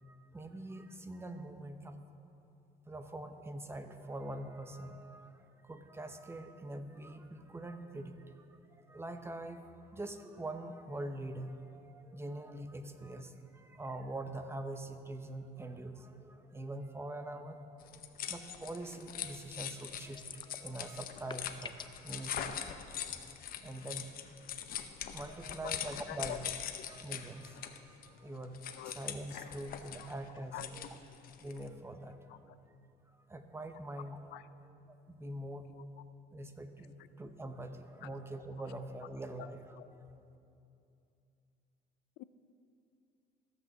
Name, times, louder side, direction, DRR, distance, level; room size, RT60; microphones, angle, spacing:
voice 1, 0.0-2.0 2.9-22.7 23.6-24.1 24.7-26.5 26.9-31.0 31.4-32.4 33.3-35.6 36.3-40.2, right 1 dB, 15° right, 8 dB, 0.8 m, -44 dB
sound 1, 17.8-31.7, left 9 dB, 60° left, 0.8 m, -43 dB
sound 2, 20.2-20.8 21.1-22.1, left 6 dB, 25° left, 0.5 m, -46 dB
voice 2, 26.1-26.4 28.8-28.9 30.5-30.7 34.3-34.4 35.7-35.8 39.8-39.9 42.2-42.3, left 16 dB, 85° left, 14 dB, 0.4 m, -43 dB
15.0 x 6.0 x 6.9 m, 2.7 s
cardioid pair, 110°, 17 cm